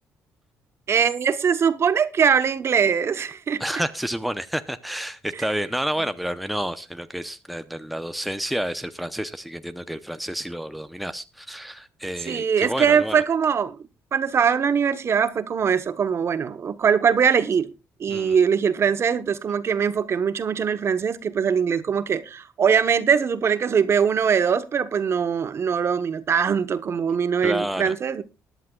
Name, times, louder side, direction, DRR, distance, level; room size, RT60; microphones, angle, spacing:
voice 1, 0.9-3.6 12.3-13.8 14.1-17.7 18.0-28.2, right 7 dB, 45° right, 1.0 m, -22 dB
voice 2, 3.6-13.2 18.1-18.4 27.4-27.9, equal, ahead, 0.7 m, -30 dB
20.0 x 11.0 x 2.3 m
cardioid pair, 100°, 6 cm